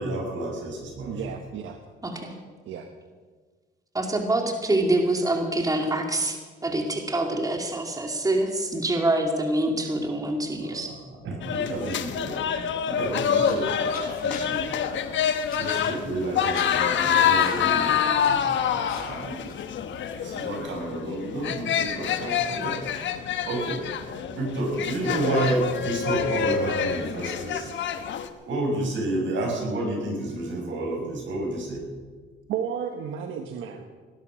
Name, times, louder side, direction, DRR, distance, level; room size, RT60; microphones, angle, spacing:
voice 1, 0.0-1.1 10.8-10.9 11.2-12.4 12.9-13.7 14.2-14.7 15.6-19.4 20.2-22.8 23.5-23.8 24.3-27.7 28.4-31.8, right 1 dB, 70° right, 0 dB, 6.4 m, -30 dB
voice 2, 1.1-1.8 2.7-2.9 32.5-33.8, right 8 dB, 85° right, 5 dB, 1.2 m, -32 dB
voice 3, 2.0-2.4 3.9-6.4 6.6-10.9, right 1 dB, 15° right, 3 dB, 2.3 m, -25 dB
sound 1, 11.4-28.3, left 8 dB, 70° left, 1.2 m, -26 dB
sound 2, 13.0-20.8, left 4 dB, 50° left, 5.8 m, -45 dB
19.0 x 11.5 x 6.3 m, 1.5 s
cardioid pair, 90°, 20 cm